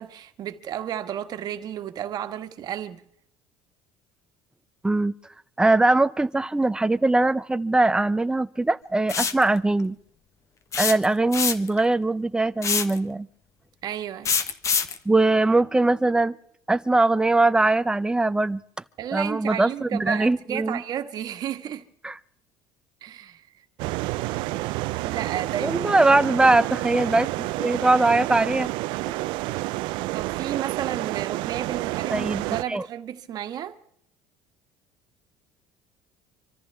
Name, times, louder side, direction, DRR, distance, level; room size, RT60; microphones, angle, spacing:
voice 1, 0.0-3.0 13.8-14.3 19.0-21.8 23.0-23.5 25.0-25.9 30.1-33.8, right 10 dB, 55° right, 1.6 m, -32 dB
voice 2, 4.8-5.1 5.6-10.0 10.8-13.3 15.1-16.4 16.7-18.6 19.1-20.8 22.0-22.2 25.6-27.3 27.6-28.7 32.1-32.4 32.7-32.9, right 2 dB, 10° right, 0.7 m, -21 dB
sound 1, 9.1-9.4 10.7-11.8 12.6-13.0 14.3-15.0, left 6 dB, 40° left, 1.3 m, -24 dB
sound 2, 23.8-32.6, right 19 dB, 75° right, 0.5 m, -29 dB
26.5 x 14.0 x 3.5 m
supercardioid pair, 105°, 8 cm